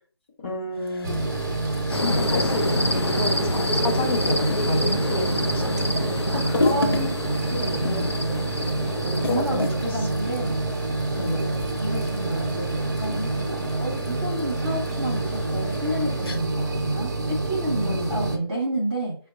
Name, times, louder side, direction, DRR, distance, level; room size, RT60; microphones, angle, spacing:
voice 1, 0.4-1.2 1.9-5.8 6.4-7.2 7.8-8.1 9.3-9.7 11.2-11.4 17.9-18.1, left 2 dB, 25° left, -1 dB, 0.8 m, -29 dB
sound 1, 0.7-18.4, left 2 dB, 60° left, 0.9 m, -36 dB
sound 2, 1.0-18.4, right 2 dB, 45° right, 0.7 m, -27 dB
sound 3, 1.9-9.4, left 1 dB, 85° left, 0.6 m, -27 dB
voice 2, 5.9-7.1 7.5-8.0 9.0-10.6 11.2-19.1, right 1 dB, 5° right, -11 dB, 0.5 m, -31 dB
4.6 x 2.2 x 4.0 m, 0.43 s
figure-of-eight pair, 160°, 14 cm